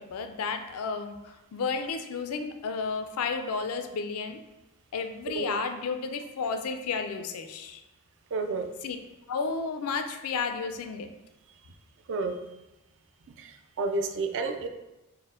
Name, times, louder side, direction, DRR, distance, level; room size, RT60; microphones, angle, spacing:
voice 1, 0.0-4.4 4.9-7.8 8.8-9.0 9.3-11.1, left 5 dB, 70° left, 7 dB, 0.4 m, -32 dB
voice 2, 8.3-8.7 12.1-12.4 13.4-13.5 13.8-14.7, right 3 dB, 55° right, 6 dB, 0.4 m, -30 dB
4.1 x 2.0 x 3.6 m, 0.97 s
head